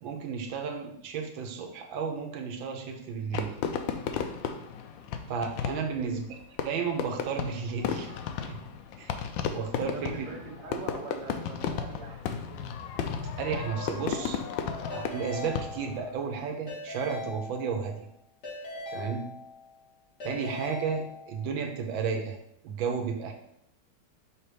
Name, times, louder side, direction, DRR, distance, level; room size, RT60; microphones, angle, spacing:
voice 1, 0.0-3.6 5.3-6.3 6.6-8.2 8.5-8.6 9.0-10.3 13.4-14.4 14.9-18.0 18.9-19.3 20.2-22.4 22.6-23.3, right 6 dB, 85° right, 3 dB, 1.5 m, -33 dB
Fireworks, 3.3-16.0, left 7 dB, 85° left, 1.3 m, -34 dB
voice 2, 9.9-12.7, right 4 dB, 50° right, -1 dB, 1.5 m, -43 dB
Keyboard (musical) / Ringtone, 14.9-16.2 16.7-18.0 18.4-19.8 20.2-21.5, left 2 dB, 60° left, 2.5 m, -41 dB
5.9 x 3.3 x 4.7 m, 0.76 s
omnidirectional pair, 2.0 m